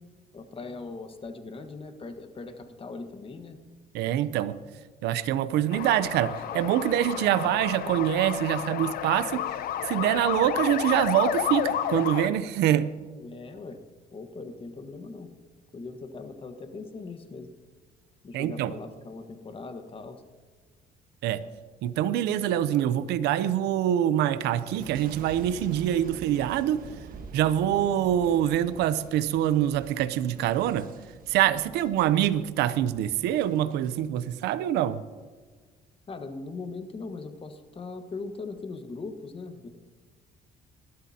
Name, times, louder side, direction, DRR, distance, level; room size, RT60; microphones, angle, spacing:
voice 1, 0.3-3.6 13.2-13.8 14.1-15.3 15.7-17.5 18.2-20.2 36.1-39.7, left 3 dB, 35° left, 7 dB, 1.4 m, -40 dB
voice 2, 3.9-4.5 5.0-9.5 9.8-12.9 18.3-18.7 21.2-21.4 21.8-26.8 27.3-30.9 31.3-35.0, right 11 dB, 80° right, 14 dB, 0.7 m, -25 dB
sound 1, 5.7-12.3, left 10 dB, 60° left, 0.7 m, -31 dB
Boom, 24.6-33.9 34.5-34.9, right 4 dB, 55° right, 1.4 m, -46 dB
20.0 x 12.5 x 2.9 m, 1.4 s
cardioid pair, 110°, 17 cm